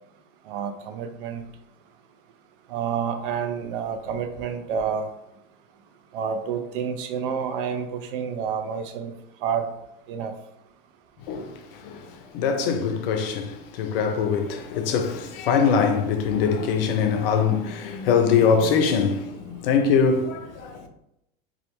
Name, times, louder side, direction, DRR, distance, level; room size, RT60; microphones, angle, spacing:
voice 1, 0.5-1.4 2.7-5.1 6.1-9.1 9.4-9.7 10.1-10.3, right 7 dB, 70° right, 0.5 m, -29 dB
voice 2, 11.3-20.9, left 6 dB, 75° left, 0.5 m, -23 dB
2.3 x 2.1 x 2.8 m
hypercardioid pair, 95°, 29 cm